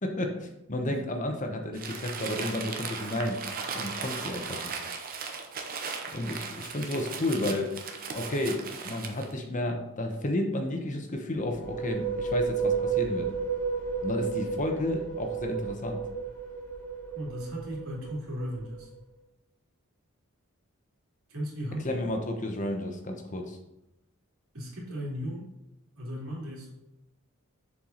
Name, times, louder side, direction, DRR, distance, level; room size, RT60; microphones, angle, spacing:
voice 1, 0.0-3.4 3.7-4.8 6.1-7.8 8.1-13.3 14.0-16.0 21.8-23.6, left 1 dB, 35° left, 3 dB, 0.9 m, -32 dB
Crumpling crinkling, 1.7-9.3, right 5 dB, 40° right, 0.7 m, -37 dB
sound 1, 11.3-19.0, right 5 dB, 10° left, 1.8 m, -32 dB
voice 2, 17.1-18.9 21.3-22.0 24.5-25.5 26.0-26.7, equal, 70° right, -4 dB, 2.6 m, -36 dB
7.2 x 4.6 x 3.9 m, 0.91 s
head